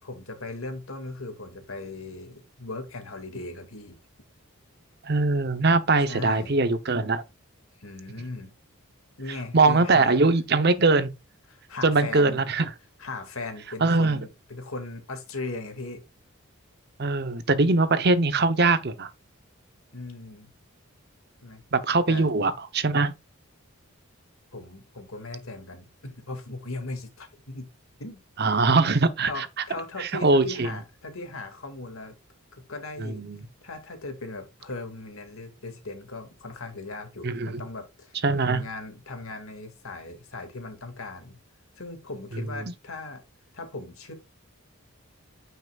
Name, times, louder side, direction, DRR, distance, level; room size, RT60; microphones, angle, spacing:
voice 1, 0.0-3.9 6.1-6.5 7.8-8.5 9.2-10.2 11.5-12.4 13.0-16.0 17.6-17.8 19.9-20.5 21.4-21.6 22.1-22.3 24.5-27.7 28.0-28.2 29.2-32.1 32.6-33.2 33.6-41.4 41.8-43.2 43.5-44.1, left 2 dB, 75° left, 2.1 m, -38 dB
voice 2, 5.0-7.2 9.5-11.1 11.8-12.6 13.8-14.2 17.0-19.1 21.7-23.1 28.4-29.5 30.0-30.7 33.0-33.4 37.2-37.6 38.2-38.6 42.6-42.7, right 3 dB, 50° right, 0.8 m, -22 dB
9.3 x 5.7 x 2.4 m
head